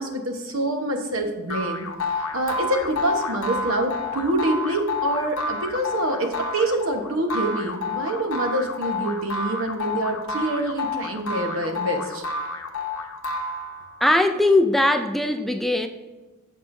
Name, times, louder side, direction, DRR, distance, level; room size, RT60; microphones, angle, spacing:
voice 1, 0.0-1.9 2.3-12.2, right 1 dB, 70° right, 4 dB, 1.1 m, -26 dB
sound 1, 1.5-14.0, left 3 dB, 85° left, 0.9 m, -29 dB
voice 2, 14.0-15.9, left 1 dB, ahead, 7 dB, 0.3 m, -20 dB
14.5 x 5.6 x 2.7 m, 1.2 s
head